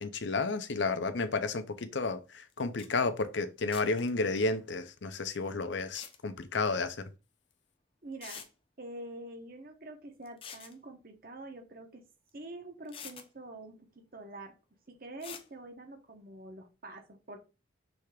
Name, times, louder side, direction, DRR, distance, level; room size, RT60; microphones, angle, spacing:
voice 1, 0.0-7.1, left 3 dB, 70° left, 0.7 m, -32 dB
sound 1, 2.5-2.6 2.8-2.9 3.7-4.1 5.8-6.2 7.5-7.6 8.2-8.5 10.3-10.7 12.3-12.4 12.9-13.3 15.2-15.5, left 7 dB, 30° left, 0.7 m, -46 dB
voice 2, 8.0-8.4 8.8-12.0 12.3-14.6 14.9-17.4, right 2 dB, 50° right, 1.2 m, -46 dB
6.3 x 3.4 x 5.0 m
head